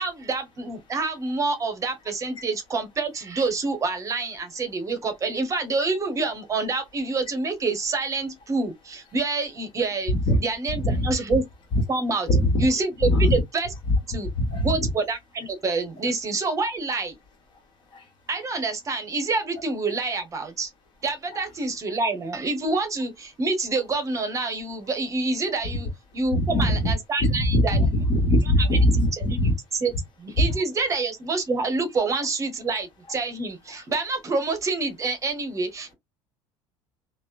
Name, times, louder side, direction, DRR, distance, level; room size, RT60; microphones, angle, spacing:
voice 1, 0.0-11.4 11.9-12.3 12.6-13.7 14.1-14.3 14.6-17.2 18.3-20.7 21.0-27.8 28.7-29.9 30.2-35.9, right 3 dB, 30° right, 0.8 m, -27 dB
voice 2, 12.3-12.7 13.0-13.3 14.4-14.7 26.3-26.9 27.2-29.5, left 1 dB, 45° left, 1.2 m, -21 dB
2.9 x 2.0 x 2.3 m
supercardioid pair, 105°, 11 cm